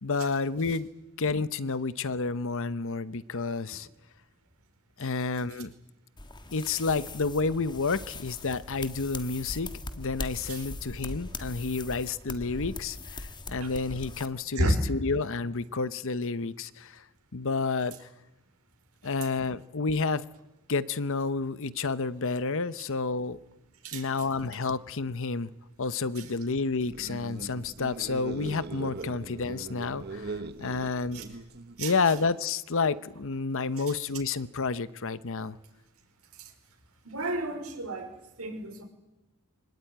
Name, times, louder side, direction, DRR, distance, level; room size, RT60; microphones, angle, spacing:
voice 1, 0.0-0.9 1.2-3.9 5.0-5.7 6.5-9.7 9.9-17.0 17.3-18.1 19.0-20.2 20.7-23.4 23.9-25.5 25.8-31.2 31.8-35.6, left 4 dB, 60° left, 16 dB, 0.9 m, -30 dB
sound 1, 6.2-14.3, left 2 dB, 20° left, 1.4 m, -40 dB
sound 2, 26.8-31.9, right 3 dB, 50° right, 1.2 m, -40 dB
voice 2, 37.0-38.8, right 1 dB, 70° right, 4 dB, 5.0 m, -31 dB
24.5 x 19.0 x 9.4 m, 1.0 s
head